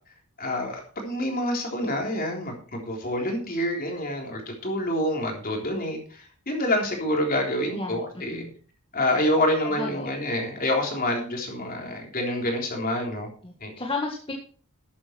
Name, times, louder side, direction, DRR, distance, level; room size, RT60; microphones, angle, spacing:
voice 1, 0.4-8.4 8.9-13.3 13.6-13.7, left 1 dB, 40° left, 1 dB, 3.6 m, -27 dB
voice 2, 7.7-8.5 9.8-10.1 13.4-14.3, left 3 dB, 25° left, 0 dB, 1.8 m, -33 dB
12.5 x 8.7 x 4.6 m, 0.42 s
head